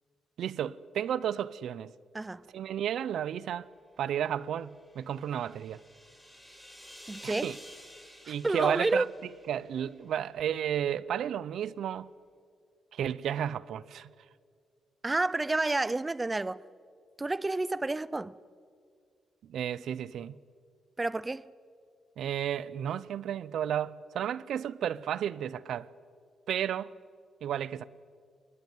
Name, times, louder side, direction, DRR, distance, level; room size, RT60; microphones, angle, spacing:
voice 1, 0.4-1.9 2.5-3.7 4.0-5.8 7.2-7.6 8.3-9.1 9.5-12.1 12.9-14.1 19.4-20.4 22.2-25.9 26.5-26.9 27.4-27.9, right 9 dB, 80° right, 0.7 m, -32 dB
voice 2, 2.1-2.5 7.1-7.5 8.2-9.1 15.0-16.6 17.2-18.3 21.0-21.5, right 2 dB, 20° right, 0.6 m, -30 dB
sound 1, 4.4-10.0, equal, 5° left, 6.0 m, -52 dB
25.0 x 21.0 x 9.2 m
cardioid pair, 115°, 0 cm